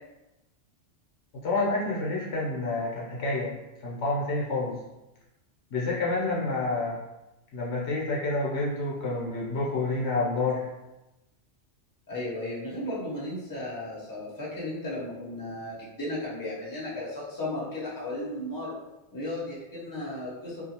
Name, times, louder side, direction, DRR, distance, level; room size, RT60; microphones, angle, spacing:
voice 1, 1.3-3.5 3.8-4.8 5.7-7.0 7.5-10.7, left 2 dB, 70° left, -4 dB, 0.9 m, -28 dB
voice 2, 12.1-18.7 19.1-20.6, left 1 dB, 20° left, -7 dB, 0.7 m, -35 dB
2.5 x 2.3 x 2.8 m, 0.97 s
omnidirectional pair, 1.2 m